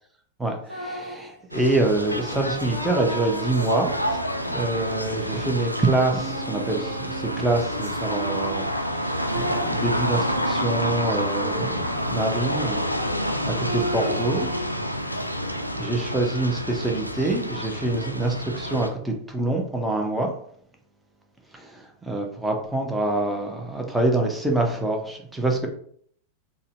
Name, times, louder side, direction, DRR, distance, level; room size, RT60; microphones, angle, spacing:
voice 1, 0.4-4.2 4.5-8.7 8.9-12.8 13.4-14.5 15.8-20.3 21.5-25.7, right 2 dB, 5° right, 1 dB, 0.6 m, -26 dB
sound 1, 0.7-1.3 2.0-5.3 6.1-8.7 9.3-12.4 13.6-14.8, right 2 dB, 70° right, 0.9 m, -35 dB
sound 2, 1.5-18.9, equal, 90° left, 0.3 m, -28 dB
3.9 x 2.1 x 2.5 m, 0.62 s
figure-of-eight pair, 90°, 0 cm